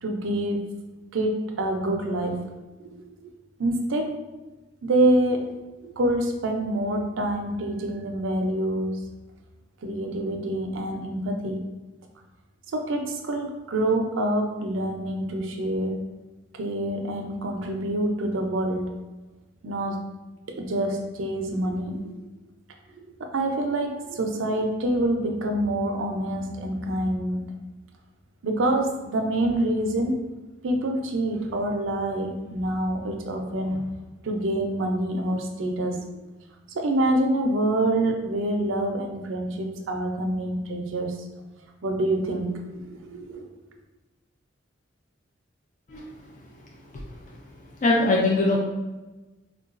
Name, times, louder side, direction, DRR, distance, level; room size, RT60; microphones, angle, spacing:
voice 1, 0.0-0.7 1.1-2.4 2.8-3.3 3.6-4.1 4.8-5.6 5.8-8.9 9.8-11.6 12.7-16.1 16.6-18.9 19.6-20.1 20.5-22.1 22.9-27.5 28.4-30.2 30.6-33.9 34.2-36.1 36.7-41.2 41.8-43.4, right 1 dB, 75° right, 3 dB, 0.5 m, -26 dB
voice 2, 46.9-47.4 47.8-48.6, left 2 dB, 40° left, -2 dB, 0.3 m, -22 dB
3.7 x 2.2 x 2.4 m, 1.1 s
head